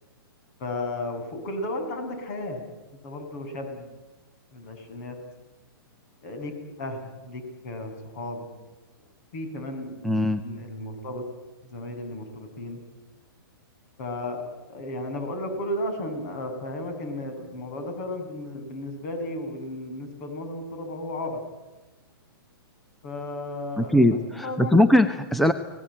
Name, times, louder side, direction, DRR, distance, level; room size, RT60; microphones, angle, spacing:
voice 1, 0.6-2.6 3.0-3.9 4.5-5.2 6.2-6.5 6.8-8.5 9.3-10.0 10.3-11.2 11.6-12.8 14.0-14.4 14.7-21.4 23.0-24.0 24.3-24.9, left 1 dB, 45° left, 7 dB, 7.4 m, -34 dB
voice 2, 10.0-10.4 23.8-25.5, left 1 dB, ahead, 10 dB, 0.9 m, -20 dB
29.5 x 19.5 x 8.9 m, 1.1 s
hypercardioid pair, 150°, 12 cm